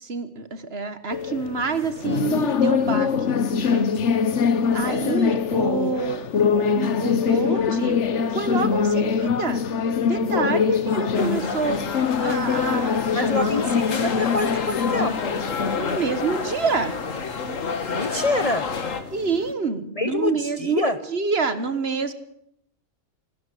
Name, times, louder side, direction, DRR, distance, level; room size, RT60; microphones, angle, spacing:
voice 1, 0.0-3.9 4.7-6.2 6.5-8.0 8.3-9.6 10.0-11.8 12.2-13.5 15.8-16.9 19.1-22.1, right 5 dB, 55° right, 12 dB, 1.6 m, -27 dB
sound 1, 1.1-19.5, left 6 dB, 65° left, 1.3 m, -24 dB
sound 2, 11.1-19.0, left 4 dB, 90° left, 2.1 m, -30 dB
voice 2, 13.1-15.4 17.9-18.7 20.0-21.0, left 2 dB, 30° left, 12 dB, 0.9 m, -26 dB
26.5 x 12.0 x 8.4 m, 0.75 s
omnidirectional pair, 1.3 m